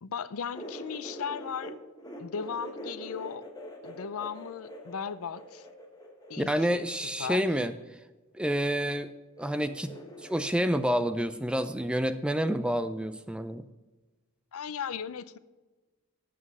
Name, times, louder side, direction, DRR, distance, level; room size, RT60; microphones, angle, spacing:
voice 1, 0.0-1.8 2.2-3.4 3.8-5.7 6.3-7.5 14.5-15.4, left 7 dB, 75° left, 16 dB, 0.5 m, -37 dB
sound 1, 0.5-1.7 2.0-7.5 8.5-9.1 9.4-10.5, equal, 20° left, 1.4 m, -44 dB
voice 2, 6.4-7.7 8.4-9.1 9.4-9.9 10.3-13.6, equal, 5° right, 11 dB, 0.4 m, -28 dB
8.2 x 7.5 x 5.5 m, 1.2 s
head